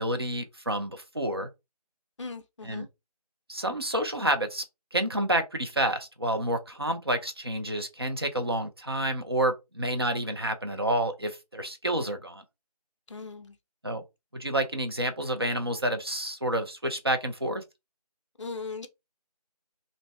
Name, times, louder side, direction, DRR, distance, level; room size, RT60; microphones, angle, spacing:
voice 1, 0.0-1.5 2.6-2.9 3.5-4.6 4.9-12.4 13.8-14.0 14.3-17.6, right 1 dB, 40° right, 0.5 m, -29 dB
voice 2, 2.2-2.9 13.1-13.6 18.4-18.9, left 4 dB, 50° left, 0.4 m, -38 dB
2.5 x 2.0 x 3.2 m
figure-of-eight pair, 170°, 21 cm